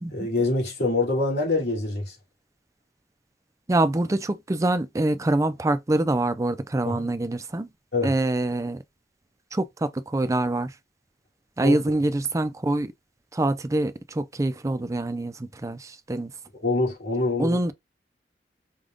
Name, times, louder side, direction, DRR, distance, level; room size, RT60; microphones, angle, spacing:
voice 1, 0.1-2.1 6.8-7.0 7.9-8.1 11.6-11.8 16.6-17.6, left 2 dB, 65° left, 2.4 m, -25 dB
voice 2, 3.7-7.7 8.0-8.8 9.5-10.7 11.6-12.9 13.3-16.3 17.4-17.7, right 2 dB, 20° right, 0.4 m, -25 dB
5.0 x 2.3 x 3.7 m
head